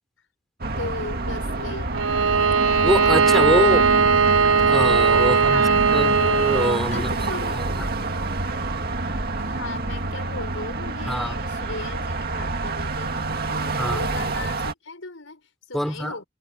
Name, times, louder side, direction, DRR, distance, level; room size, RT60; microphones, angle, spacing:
sound 1, 0.6-14.7, right 2 dB, 50° right, 2.1 m, -27 dB
voice 1, 0.8-2.0 3.6-4.1 5.2-5.8 6.9-7.8 9.4-16.2, left 3 dB, 75° left, 5.4 m, -37 dB
Bowed string instrument, 1.9-6.9, right 5 dB, 85° right, 1.7 m, -19 dB
voice 2, 2.8-3.8 4.7-7.1 7.5-7.9 11.1-11.4 13.8-14.0 15.7-16.1, equal, ahead, 4.3 m, -25 dB
head